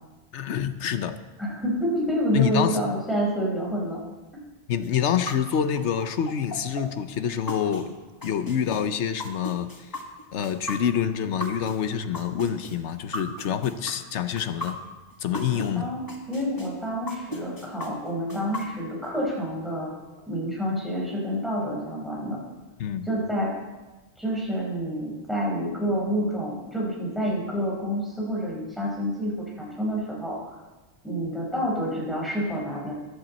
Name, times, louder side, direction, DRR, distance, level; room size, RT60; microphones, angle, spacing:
voice 1, 0.3-1.2 2.3-2.8 4.7-8.0 8.2-10.0 10.3-14.8 15.2-15.9 22.8-23.1, left 8 dB, 80° left, 10 dB, 1.1 m, -27 dB
voice 2, 1.4-4.0 15.8-19.9 20.3-22.4 23.1-23.5 24.2-30.6 31.0-32.9, equal, ahead, -4 dB, 4.4 m, -28 dB
sound 1, 4.8-15.7 16.1-19.1, left 1 dB, 20° left, 1.5 m, -36 dB
14.0 x 12.0 x 4.2 m, 1.2 s
omnidirectional pair, 1.2 m